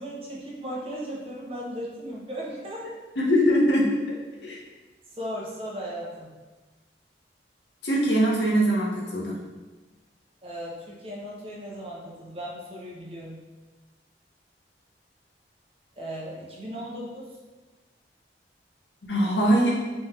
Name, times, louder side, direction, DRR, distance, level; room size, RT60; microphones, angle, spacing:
voice 1, 0.0-2.8 5.2-6.3 10.4-13.4 16.0-17.3, equal, 35° right, -5 dB, 0.9 m, -36 dB
voice 2, 3.2-4.6 7.8-9.4 19.1-19.7, equal, 80° left, -3 dB, 0.9 m, -22 dB
3.5 x 3.2 x 3.3 m, 1.2 s
head